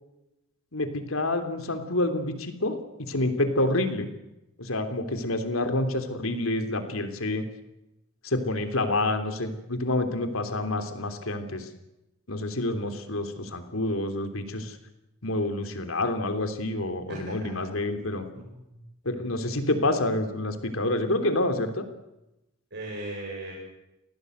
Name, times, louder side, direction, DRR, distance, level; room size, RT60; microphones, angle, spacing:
voice 1, 0.7-4.1 4.6-7.5 8.2-11.7 12.3-14.8 15.2-18.2 19.0-21.8, left 2 dB, 85° left, 7 dB, 3.2 m, -28 dB
voice 2, 17.1-17.7 18.3-18.8 19.1-19.2 22.7-23.5, right 1 dB, 60° right, -2 dB, 7.3 m, -38 dB
27.5 x 18.5 x 8.0 m, 0.92 s
head